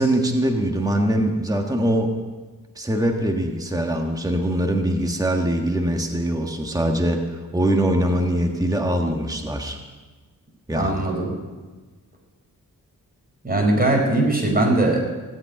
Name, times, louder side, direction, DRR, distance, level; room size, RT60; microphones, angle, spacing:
voice 1, 0.0-2.1 2.7-9.8 10.7-10.9, right 1 dB, 10° right, 2 dB, 1.5 m, -22 dB
voice 2, 10.7-11.3 13.4-15.0, right 2 dB, 25° right, 1 dB, 4.8 m, -20 dB
17.0 x 8.5 x 9.8 m, 1.3 s
wide cardioid pair, 105°, 34 cm